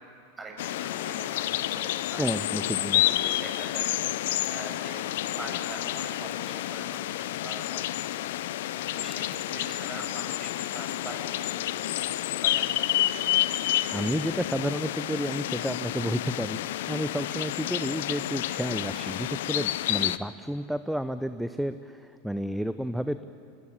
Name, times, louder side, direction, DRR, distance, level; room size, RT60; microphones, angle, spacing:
voice 1, 0.4-4.0 4.5-5.1 5.4-8.0 8.9-13.5 18.5-19.2, right 2 dB, 15° right, 1 dB, 7.7 m, -44 dB
sound 1, 0.6-20.2, left 14 dB, 65° left, 0.7 m, -30 dB
voice 2, 2.2-3.0 13.9-16.6 16.9-22.0 22.2-23.2, equal, ahead, 11 dB, 0.8 m, -31 dB
26.5 x 21.5 x 8.6 m, 2.7 s
figure-of-eight pair, 85°, 0 cm